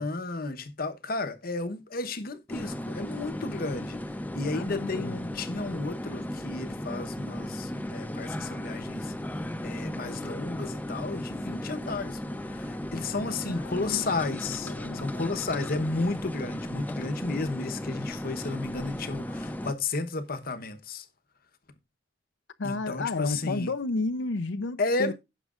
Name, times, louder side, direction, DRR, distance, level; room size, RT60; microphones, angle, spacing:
voice 1, 0.0-4.0 4.3-9.1 9.6-21.1 22.6-23.7 24.8-25.1, left 3 dB, 55° left, 1.0 m, -33 dB
sound 1, 2.5-19.7, left 1 dB, 10° left, 0.7 m, -36 dB
voice 2, 4.5-5.2 13.5-14.1 14.6-15.0 22.6-25.1, left 3 dB, 90° left, 0.6 m, -32 dB
16.5 x 6.4 x 2.5 m
head